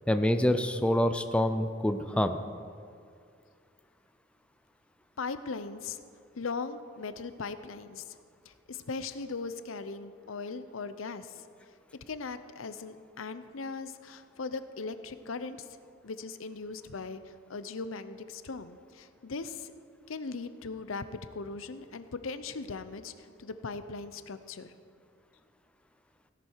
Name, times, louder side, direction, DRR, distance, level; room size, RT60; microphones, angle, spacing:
voice 1, 0.1-2.4, left 1 dB, 5° left, 8 dB, 0.5 m, -26 dB
voice 2, 5.2-6.0 6.3-8.2 8.4-11.4 12.1-15.7 16.0-19.7 20.1-21.0 21.3-24.7, left 4 dB, 85° left, 12 dB, 0.7 m, -39 dB
16.5 x 11.0 x 4.6 m, 2.3 s
head